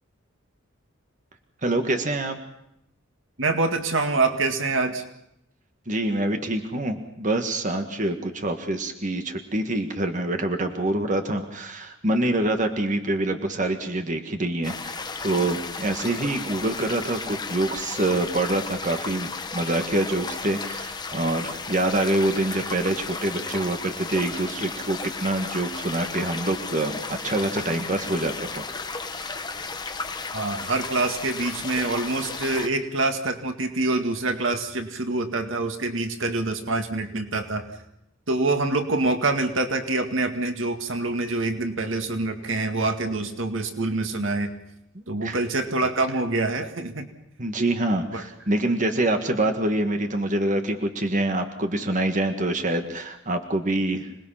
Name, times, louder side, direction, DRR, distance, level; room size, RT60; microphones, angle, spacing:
voice 1, 1.6-2.4 5.9-28.6 29.1-29.3 45.2-45.4 47.4-54.1, right 1 dB, 40° right, 5 dB, 1.7 m, -26 dB
voice 2, 3.4-5.0 30.3-37.6 38.3-44.5 45.1-47.1 48.1-48.2, right 2 dB, 80° right, 6 dB, 2.1 m, -25 dB
sound 1, 14.6-32.7, left 4 dB, 20° left, 1.4 m, -34 dB
26.5 x 20.0 x 5.8 m, 0.79 s
head